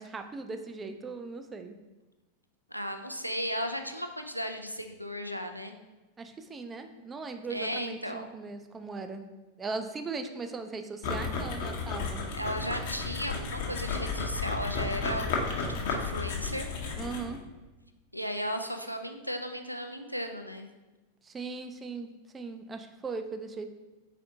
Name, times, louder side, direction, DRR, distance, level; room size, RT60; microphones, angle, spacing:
voice 1, 0.0-1.7 6.2-9.2 9.6-12.2 17.0-17.4 21.2-22.1 22.3-23.7, right 4 dB, 20° right, 7 dB, 0.3 m, -38 dB
voice 2, 2.7-5.7 7.5-8.3 12.3-16.7 18.1-20.7, equal, 90° left, 5 dB, 0.3 m, -35 dB
sound 1, 11.0-17.4, left 4 dB, 50° left, 0.7 m, -33 dB
4.1 x 4.1 x 2.6 m, 1.2 s
figure-of-eight pair, 90°, 0 cm